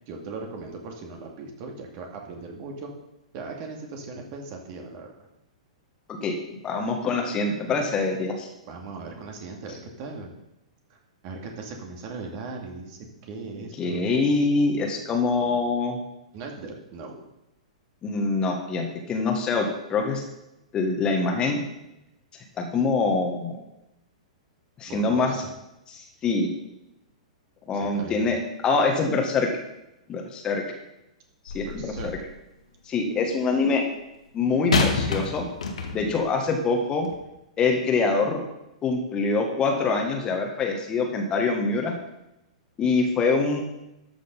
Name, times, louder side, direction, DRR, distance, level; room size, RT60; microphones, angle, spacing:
voice 1, 0.1-2.9 3.3-5.3 8.7-10.3 10.9-14.3 16.3-17.2 24.9-25.5 27.7-28.4 31.6-32.1, right 3 dB, 40° right, 2 dB, 2.3 m, -38 dB
voice 2, 6.2-8.5 13.8-16.0 18.0-20.2 20.7-21.6 22.6-23.6 24.8-25.4 25.9-26.5 27.7-28.4 28.6-29.5 30.1-30.6 31.5-32.1 32.9-33.8 34.3-35.4 35.9-37.1 37.6-38.4 38.8-41.9 42.8-43.6, left 4 dB, 20° left, 2 dB, 1.7 m, -24 dB
sound 1, 31.5-32.3 34.7-36.2 37.0-37.2, left 3 dB, 65° left, 1.7 m, -27 dB
13.0 x 6.2 x 5.4 m, 0.90 s
figure-of-eight pair, 105°, 4 cm